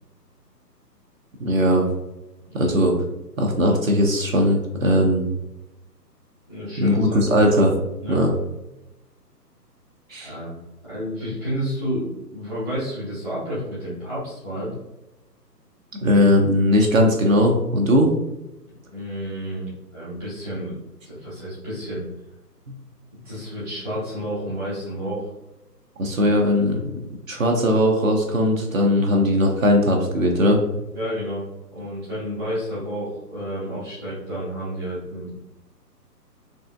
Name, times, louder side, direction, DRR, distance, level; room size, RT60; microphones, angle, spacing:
voice 1, 1.4-1.9 2.5-2.9 3.4-5.3 6.8-7.7 8.1-8.3 10.1-10.3 16.0-18.1 26.0-26.8 27.3-30.6, equal, 55° right, 1 dB, 0.6 m, -19 dB
voice 2, 6.5-7.2 8.0-8.2 10.2-10.6 10.8-14.7 18.9-20.7 21.0-22.0 23.2-25.3 30.9-35.3, equal, 5° right, -13 dB, 0.7 m, -30 dB
3.4 x 2.6 x 2.3 m, 0.96 s
figure-of-eight pair, 140°, 49 cm